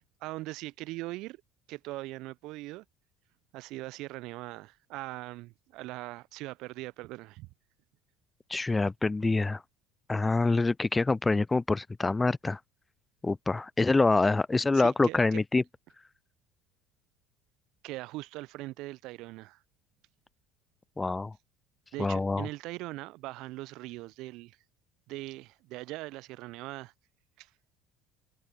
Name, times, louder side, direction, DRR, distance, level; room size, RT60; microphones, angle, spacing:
voice 1, 0.2-1.4 1.7-2.8 3.5-7.5 14.7-15.4 17.8-19.6 21.9-24.6 25.1-26.9 27.4-27.5, right 19 dB, 60° right, 0.6 m, -41 dB
voice 2, 8.5-9.6 10.1-12.6 13.2-15.6 21.0-21.3 22.0-22.5, left 3 dB, 15° left, 0.4 m, -26 dB
hypercardioid pair, 65°, 0 cm